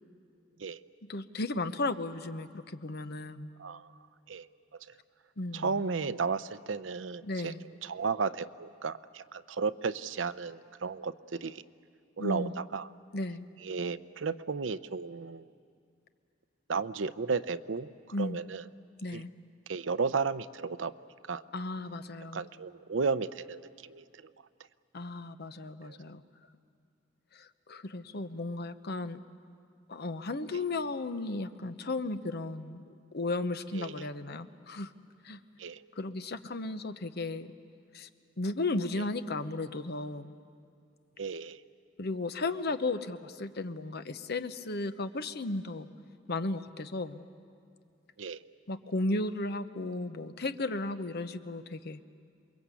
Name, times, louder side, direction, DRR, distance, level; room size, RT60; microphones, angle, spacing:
voice 1, 1.1-3.5 5.4-5.8 7.2-7.6 12.2-12.5 13.1-13.4 18.1-18.4 19.0-19.3 21.5-22.5 24.9-26.2 27.3-29.2 29.9-32.8 33.1-34.9 35.2-35.4 36.0-37.5 37.9-38.1 38.4-40.3 42.0-45.9 46.3-47.2 48.7-52.0, left 2 dB, 55° left, 10 dB, 0.9 m, -35 dB
voice 2, 3.6-3.9 4.3-4.5 5.5-7.5 7.8-11.6 12.2-12.9 13.6-15.5 16.7-17.9 18.2-18.6 19.1-19.2 19.7-20.9 21.3-21.4 22.3-24.3 25.8-26.0 33.7-34.1 35.6-35.8 39.0-39.1 41.2-41.6 48.2-48.4, right 5 dB, 80° right, 13 dB, 0.6 m, -34 dB
28.0 x 22.0 x 8.3 m, 2.3 s
head